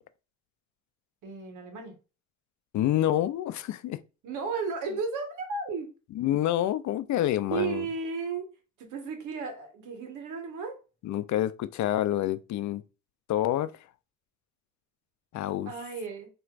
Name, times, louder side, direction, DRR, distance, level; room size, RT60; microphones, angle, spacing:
voice 1, 1.2-1.9 4.2-5.9 7.5-8.5 8.8-10.8 15.6-16.3, right 5 dB, 85° right, 1.4 m, -34 dB
voice 2, 2.7-4.0 6.1-7.9 11.0-12.8 13.3-13.9 15.3-15.7, left 12 dB, 70° left, 0.5 m, -27 dB
4.5 x 3.0 x 2.4 m
cardioid pair, 90°, 30 cm